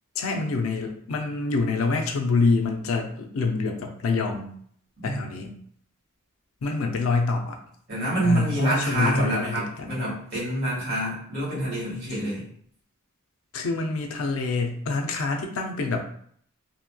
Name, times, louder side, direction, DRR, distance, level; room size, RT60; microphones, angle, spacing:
voice 1, 0.1-4.5 5.0-5.5 6.6-7.6 8.2-9.9 13.5-16.0, left 3 dB, 75° left, 3 dB, 0.4 m, -26 dB
voice 2, 7.9-12.5, right 1 dB, 45° right, -7 dB, 1.5 m, -26 dB
2.9 x 2.6 x 2.2 m, 0.62 s
head